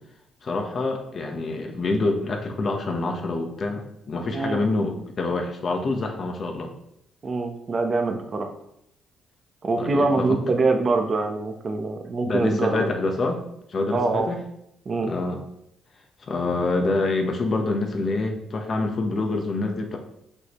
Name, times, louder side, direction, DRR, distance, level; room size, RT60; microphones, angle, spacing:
voice 1, 0.4-6.7 9.8-10.4 12.2-13.4 13.7-14.4 15.0-15.4 16.2-20.0, left 3 dB, 45° left, 3 dB, 1.2 m, -26 dB
voice 2, 7.2-8.5 9.6-12.9 13.9-14.3 14.8-15.1, right 3 dB, 40° right, 5 dB, 1.0 m, -24 dB
6.2 x 5.6 x 3.1 m, 0.78 s
cardioid pair, 90°, 0 cm